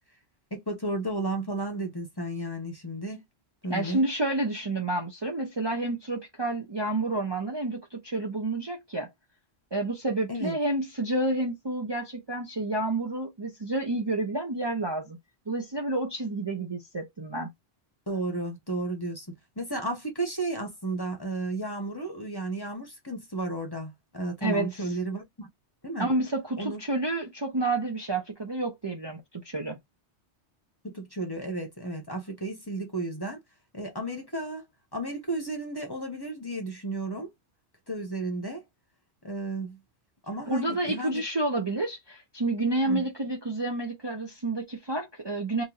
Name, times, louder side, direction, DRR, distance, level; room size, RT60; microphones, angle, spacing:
voice 1, 0.5-3.2 3.6-4.0 10.3-10.6 18.1-19.3 19.6-25.5 25.8-26.1 26.6-26.8 30.8-33.4 33.7-34.6 34.9-37.3 37.9-38.6 39.2-39.8 40.2-41.2 42.8-43.1, right 2 dB, 20° left, 1.0 m, -33 dB
voice 2, 3.7-9.1 9.7-15.2 15.5-17.5 24.4-24.7 26.0-29.8 40.5-45.6, right 2 dB, 25° right, 0.7 m, -29 dB
3.0 x 2.6 x 3.9 m
omnidirectional pair, 1.1 m